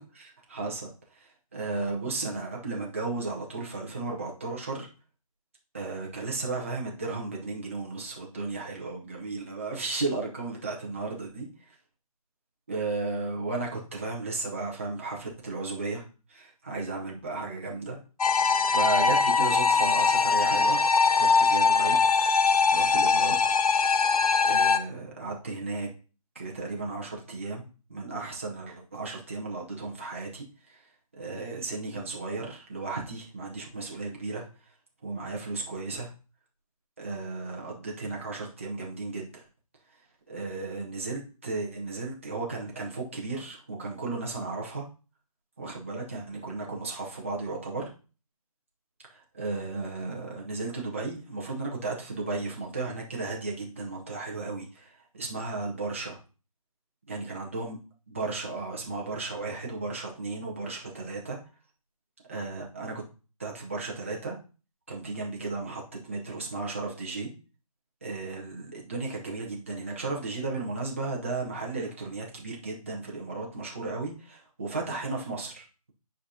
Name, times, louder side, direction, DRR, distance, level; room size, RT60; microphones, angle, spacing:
voice 1, 0.0-4.9 5.7-11.7 12.7-18.0 18.7-20.8 21.1-22.0 22.7-23.3 24.4-25.9 26.3-27.6 27.9-34.4 35.0-36.1 37.0-39.4 40.3-44.9 45.6-47.9 49.1-56.2 57.1-57.8 58.1-61.4 62.3-63.0 63.4-64.4 64.9-67.3 68.0-75.9, right 3 dB, 20° right, -2 dB, 0.9 m, -34 dB
sound 1, 18.2-24.8, left 5 dB, 75° left, 0.8 m, -22 dB
10.0 x 5.0 x 2.8 m, 0.35 s
hypercardioid pair, 180°, 19 cm